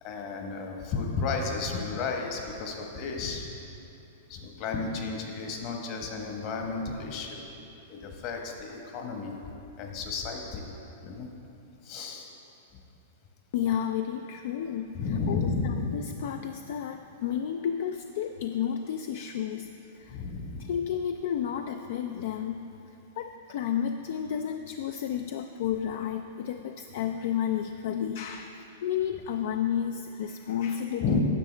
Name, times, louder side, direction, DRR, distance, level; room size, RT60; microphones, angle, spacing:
voice 1, 0.0-3.5 4.3-7.4 7.9-9.3 9.8-10.6 11.0-11.3 11.8-12.3 14.9-16.0 20.1-20.7 31.0-31.2, left 4 dB, 45° left, 2 dB, 1.2 m, -32 dB
voice 2, 13.5-20.2 20.6-31.1, left 9 dB, 65° left, 7 dB, 0.3 m, -32 dB
9.9 x 7.0 x 3.3 m, 2.9 s
hypercardioid pair, 125°, 0 cm